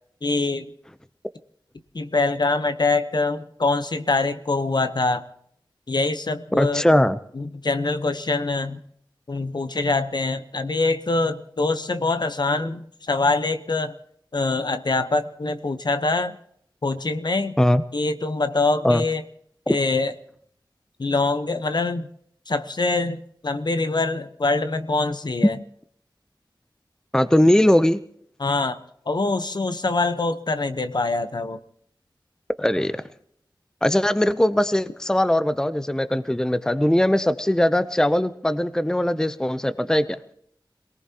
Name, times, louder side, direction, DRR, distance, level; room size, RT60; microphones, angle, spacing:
voice 1, 0.2-0.7 1.9-5.2 5.9-6.9 7.3-8.8 9.3-13.9 14.3-16.4 16.8-17.6 17.9-19.2 19.7-20.1 21.0-22.1 22.5-25.6 28.4-28.8 29.1-31.6, left 3 dB, 55° left, 10 dB, 0.9 m, -24 dB
voice 2, 6.6-7.2 17.6-17.8 18.8-19.0 19.7-19.8 27.1-28.0 32.6-33.0 33.8-40.2, left 1 dB, 5° left, 13 dB, 0.6 m, -20 dB
26.5 x 18.0 x 2.9 m, 0.66 s
wide cardioid pair, 65°, 9 cm